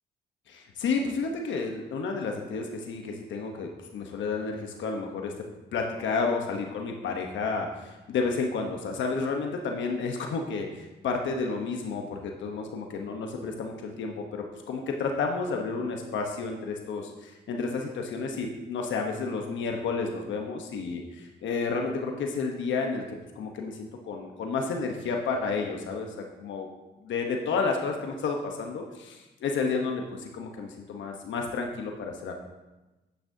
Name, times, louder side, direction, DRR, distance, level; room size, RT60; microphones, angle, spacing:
voice 1, 0.5-5.4 5.7-26.7 27.0-32.3, left 4 dB, 70° left, 2 dB, 1.0 m, -31 dB
10.0 x 8.8 x 2.7 m, 1.1 s
cardioid pair, 90°, 20 cm